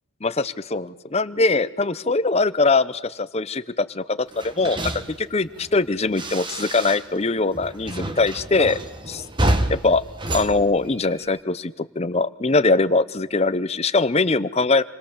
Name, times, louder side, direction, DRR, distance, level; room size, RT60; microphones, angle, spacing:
voice 1, 0.2-8.8 9.1-9.2 9.7-10.0 10.3-14.8, left 3 dB, 30° left, 14 dB, 0.7 m, -22 dB
sound 1, 4.3-7.3 7.5-11.4, right 1 dB, 20° right, 1.3 m, -28 dB
27.5 x 21.0 x 7.2 m, 1.3 s
head